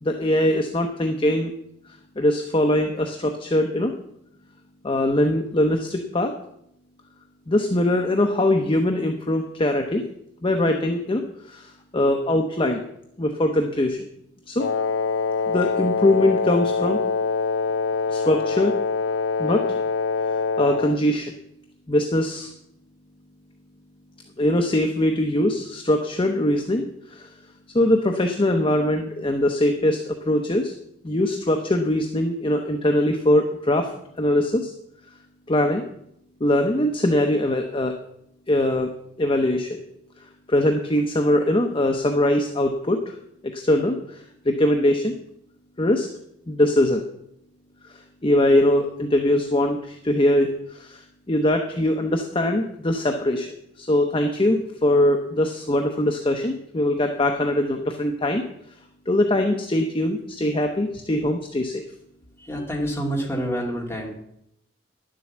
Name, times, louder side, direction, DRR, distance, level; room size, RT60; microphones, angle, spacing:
voice 1, 0.0-1.5 1.9-3.9 4.8-6.3 7.5-10.0 10.4-12.8 13.2-14.0 14.5-14.6 15.5-17.0 18.1-18.7 19.4-19.8 20.6-21.3 21.9-22.5 24.4-27.3 27.7-30.7 31.0-33.9 34.2-34.7 35.5-35.8 36.4-37.9 38.5-38.9 39.2-39.8 40.5-43.2 43.4-45.1 45.8-46.1 46.5-47.0 47.8-58.4 59.1-61.8, left 1 dB, 30° left, 4 dB, 0.8 m, -22 dB
Wind instrument woodwind instrument, 14.6-21.0, left 4 dB, 85° left, 0.4 m, -24 dB
voice 2, 62.4-64.1, equal, 15° left, -1 dB, 2.4 m, -27 dB
11.0 x 7.6 x 7.2 m, 0.76 s
head